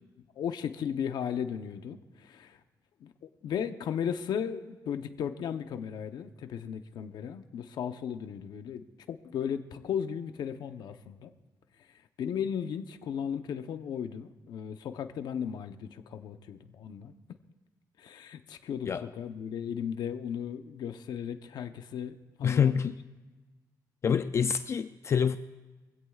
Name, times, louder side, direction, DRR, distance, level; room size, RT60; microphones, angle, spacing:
voice 1, 0.4-2.6 3.0-3.1 3.4-11.3 12.2-17.1 18.0-22.7, left 8 dB, 75° left, 0.9 m, -36 dB
voice 2, 22.4-22.9 24.0-25.4, left 7 dB, 40° left, 0.4 m, -26 dB
24.5 x 16.5 x 2.4 m
wide cardioid pair, 155°, 7 cm